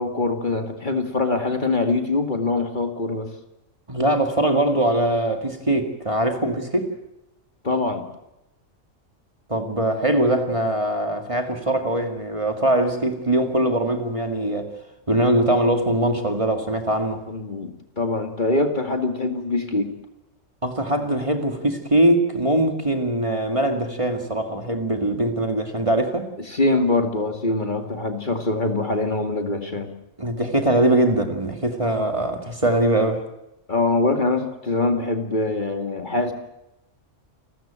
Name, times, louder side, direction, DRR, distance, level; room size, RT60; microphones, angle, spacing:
voice 1, 0.0-3.3 7.6-8.0 17.3-19.9 26.5-29.9 33.7-36.3, left 2 dB, 40° left, 2.3 m, -23 dB
voice 2, 3.9-6.9 9.5-14.7 15.1-17.2 20.6-26.3 30.2-33.2, right 1 dB, 25° right, 2.2 m, -22 dB
29.0 x 14.5 x 8.9 m
omnidirectional pair, 1.3 m